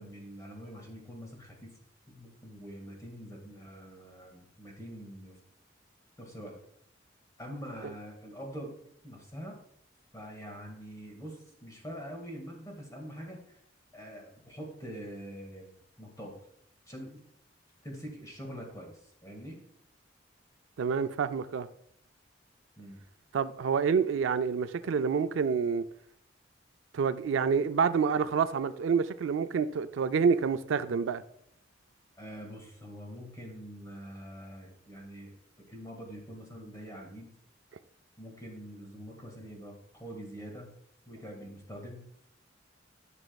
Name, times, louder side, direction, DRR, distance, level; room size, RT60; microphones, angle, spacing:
voice 1, 0.0-1.7 2.1-5.4 6.2-6.5 7.4-8.8 9.0-9.6 10.1-13.6 13.9-16.3 16.9-17.2 17.8-19.6 22.8-23.0 32.2-35.3 35.6-37.3 38.2-40.7 41.1-42.3, equal, 20° left, 1.9 m, -44 dB
voice 2, 20.8-21.7 23.3-25.8 26.9-31.2, right 6 dB, 85° right, 0.4 m, -28 dB
11.0 x 6.2 x 2.3 m
head